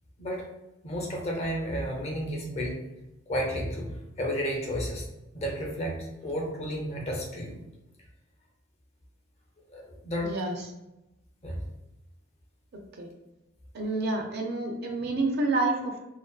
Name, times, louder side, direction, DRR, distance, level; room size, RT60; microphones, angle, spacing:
voice 1, 0.8-2.8 3.3-5.1 5.3-7.6 9.7-10.3 11.4-11.6, equal, 30° left, -1 dB, 0.4 m, -32 dB
voice 2, 10.2-10.5 13.0-13.1 13.7-16.0, right 2 dB, 50° right, 2 dB, 0.4 m, -28 dB
2.5 x 2.2 x 2.2 m, 0.95 s
head